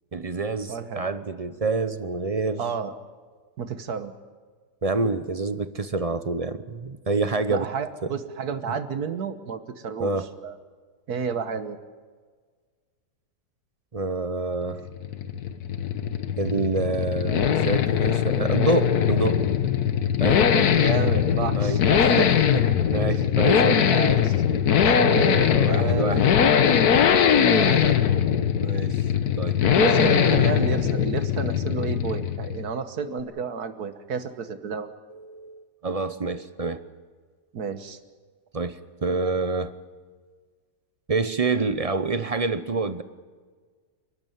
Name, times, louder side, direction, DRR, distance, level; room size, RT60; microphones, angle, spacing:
voice 1, 0.1-2.6 4.8-7.7 8.0-8.1 10.0-10.3 13.9-14.8 16.4-19.4 20.2-20.7 21.6-22.4 22.9-23.9 25.2-26.2 28.6-29.1 29.4-30.5 35.1-36.8 38.5-39.7 41.1-43.0, right 3 dB, 35° right, 12 dB, 0.6 m, -27 dB
voice 2, 0.7-1.0 2.6-2.9 3.6-4.1 7.5-10.1 10.4-10.6 11.1-11.8 20.7-22.3 22.5-22.6 23.9-24.4 24.8-26.3 27.3-28.0 29.7-34.9 37.5-38.0, right 6 dB, 70° right, 10 dB, 1.7 m, -30 dB
sound 1, 14.7-32.7, left 8 dB, 70° left, 1.5 m, -21 dB
29.0 x 12.5 x 9.3 m, 1.5 s
omnidirectional pair, 1.7 m